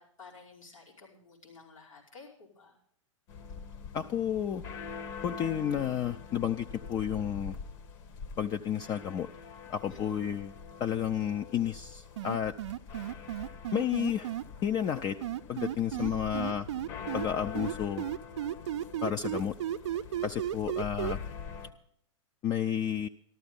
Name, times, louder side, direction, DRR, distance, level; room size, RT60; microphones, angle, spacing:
voice 1, 0.0-2.8 3.5-3.6 9.9-10.3 13.9-14.1 15.9-16.4, left 4 dB, 85° left, -5 dB, 5.7 m, -52 dB
sound 1, 3.3-21.7, left 5 dB, 45° left, 1.4 m, -44 dB
voice 2, 3.9-4.6 5.2-7.6 8.4-9.3 9.7-10.5 10.8-12.6 13.7-14.3 14.6-15.2 15.5-16.6 17.1-18.1 19.0-19.5 20.2-21.2 22.4-23.1, left 9 dB, 25° left, 7 dB, 0.5 m, -31 dB
sound 2, 12.2-14.4 15.2-17.3 17.5-21.1, right 12 dB, 60° right, 0.6 m, -34 dB
14.0 x 13.0 x 5.3 m, 0.67 s
figure-of-eight pair, 105°, 17 cm